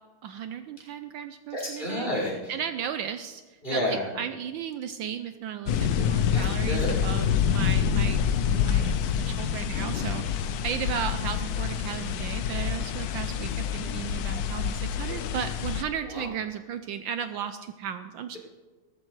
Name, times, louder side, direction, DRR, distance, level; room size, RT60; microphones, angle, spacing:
voice 1, 0.2-2.1 2.5-3.4 3.7-8.2 8.5-18.4, right 8 dB, 75° right, 10 dB, 1.2 m, -35 dB
voice 2, 1.5-2.5 3.6-4.1 6.3-7.0 12.5-12.6 16.0-16.3, left 1 dB, 25° left, -4 dB, 5.3 m, -31 dB
sound 1, 5.7-15.8, left 8 dB, 70° left, 0.9 m, -27 dB
17.5 x 14.0 x 3.2 m, 1.3 s
omnidirectional pair, 2.3 m